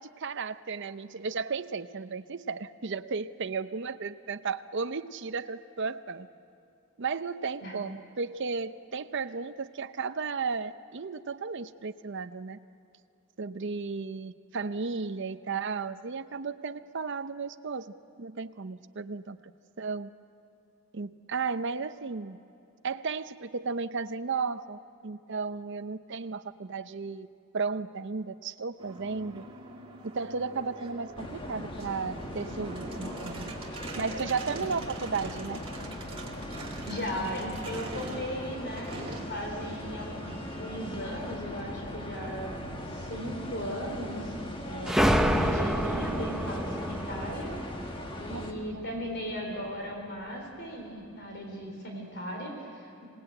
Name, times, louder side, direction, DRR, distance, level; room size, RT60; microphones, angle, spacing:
voice 1, 0.0-6.3 7.0-12.6 13.4-19.4 19.8-20.1 20.9-22.4 22.8-27.3 27.5-29.5 30.0-33.5 33.9-35.6 48.3-49.0, right 4 dB, 55° right, 10 dB, 0.6 m, -34 dB
sound 1, 28.8-43.4, right 1 dB, 25° right, 2.3 m, -44 dB
sound 2, 31.2-48.5, left 1 dB, 25° left, 1.5 m, -40 dB
voice 2, 36.9-39.0 39.3-44.3 44.7-47.5 48.2-53.1, equal, 50° left, 1 dB, 3.8 m, -37 dB
sound 3, 44.9-49.3, equal, ahead, 0.7 m, -28 dB
26.5 x 18.5 x 8.9 m, 2.7 s
head